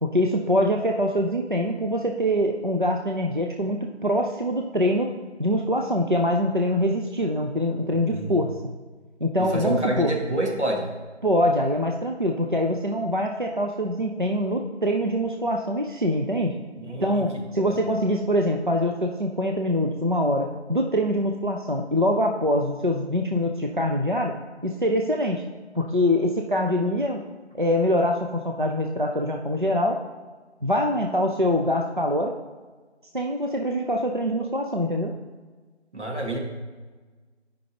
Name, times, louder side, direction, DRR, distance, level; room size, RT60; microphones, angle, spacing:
voice 1, 0.0-5.1 5.4-8.5 9.2-10.1 11.2-16.5 17.0-24.4 24.6-25.4 25.8-27.2 27.6-30.0 30.6-32.3 33.1-35.1, equal, 45° right, 2 dB, 0.5 m, -24 dB
voice 2, 7.9-8.4 9.4-10.9 16.8-17.3 17.7-17.8 35.9-36.4, right 1 dB, 85° right, 0 dB, 1.8 m, -28 dB
12.5 x 5.3 x 2.9 m, 1.3 s
figure-of-eight pair, 180°, 34 cm